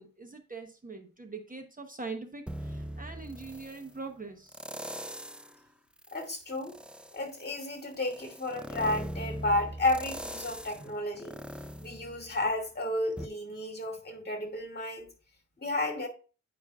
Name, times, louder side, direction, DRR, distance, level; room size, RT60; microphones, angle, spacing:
voice 1, 0.0-4.6 10.8-10.9, right 4 dB, 30° right, 1.0 m, -42 dB
sound 1, 2.5-3.9 4.5-5.6 6.0-12.7 13.2-13.3, equal, 5° right, 0.4 m, -41 dB
voice 2, 6.1-6.8 7.1-11.4 11.8-15.1 15.6-16.1, left 1 dB, 35° left, 2.2 m, -32 dB
9.5 x 5.1 x 2.4 m
wide cardioid pair, 95°, 29 cm